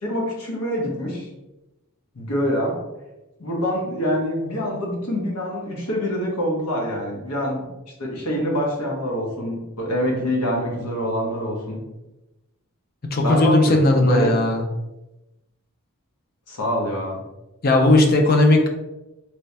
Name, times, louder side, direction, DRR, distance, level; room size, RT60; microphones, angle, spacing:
voice 1, 0.0-1.3 2.1-2.8 3.4-7.6 8.0-11.8 13.2-14.4 16.5-17.2, equal, 90° left, -2 dB, 1.1 m, -25 dB
voice 2, 13.1-14.6 17.6-18.7, left 2 dB, 40° left, 3 dB, 0.5 m, -17 dB
3.3 x 2.7 x 3.3 m, 1.0 s
head